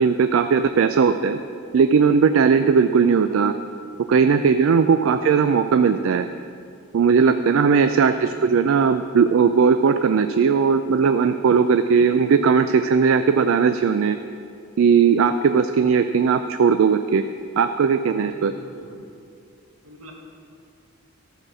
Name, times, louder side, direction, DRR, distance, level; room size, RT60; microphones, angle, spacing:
voice 1, 0.0-1.4 1.7-3.5 4.1-6.3 6.9-14.2 14.8-17.2 17.6-18.5, right 6 dB, 70° right, 9 dB, 0.3 m, -18 dB
voice 2, 7.9-8.3 11.9-12.1 18.3-19.0 19.8-20.1, equal, 85° right, -1 dB, 1.8 m, -44 dB
14.0 x 4.9 x 6.2 m, 2.4 s
head